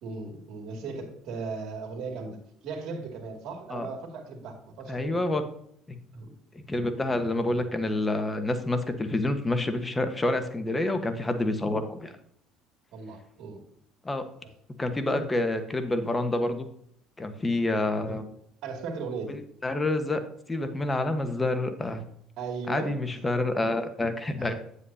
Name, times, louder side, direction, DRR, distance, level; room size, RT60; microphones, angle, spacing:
voice 1, 0.0-2.4 2.6-5.2 6.1-6.3 12.9-13.6 14.4-14.5 15.1-15.2 18.1-18.2 18.6-19.4 22.4-22.9 24.4-24.5, right 4 dB, 70° right, 3 dB, 2.4 m, -37 dB
voice 2, 4.9-5.4 5.9-6.0 6.5-12.1 14.0-14.3 14.8-16.7 17.2-18.2 19.3-20.2 20.5-22.0 22.7-24.5, left 2 dB, 20° left, 8 dB, 1.3 m, -28 dB
9.4 x 8.3 x 2.8 m, 0.67 s
supercardioid pair, 75°, 0 cm